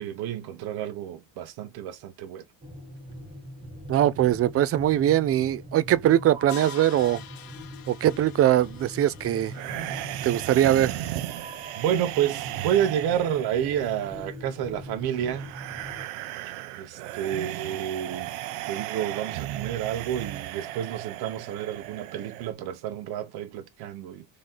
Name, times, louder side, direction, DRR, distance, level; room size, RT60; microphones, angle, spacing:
voice 1, 0.0-2.4 11.8-15.5 16.7-18.3 18.7-24.2, right 10 dB, 60° right, 1.1 m, -29 dB
sound 1, 2.6-16.0, equal, 10° right, 1.7 m, -42 dB
voice 2, 3.9-7.2 7.9-9.5 10.2-11.0, right 12 dB, 35° right, 0.5 m, -22 dB
Crash cymbal, 6.5-11.5, left 11 dB, 55° left, 1.3 m, -48 dB
sound 2, 9.5-22.5, right 15 dB, 85° right, 0.8 m, -36 dB
3.9 x 3.2 x 4.1 m
supercardioid pair, 110°, 42 cm